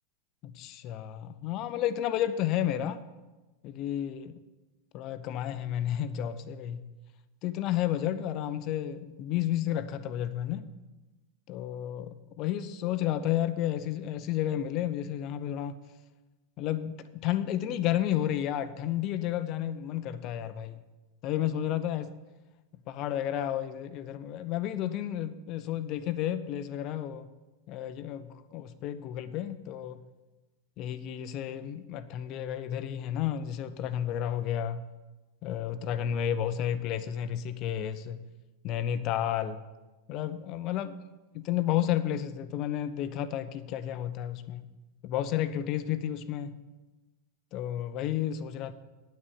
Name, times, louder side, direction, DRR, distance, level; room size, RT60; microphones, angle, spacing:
voice 1, 0.4-3.0 3.6-4.4 4.9-6.8 7.4-10.7 11.5-15.8 16.6-20.8 21.2-22.1 22.9-27.3 27.7-30.0 30.8-34.8 35.4-38.2 38.6-39.6 40.1-41.0 41.3-44.6 45.0-46.6 47.5-48.7, left 11 dB, 40° left, 12 dB, 0.6 m, -31 dB
9.3 x 6.1 x 7.0 m, 1.1 s
figure-of-eight pair, 90°, 0 cm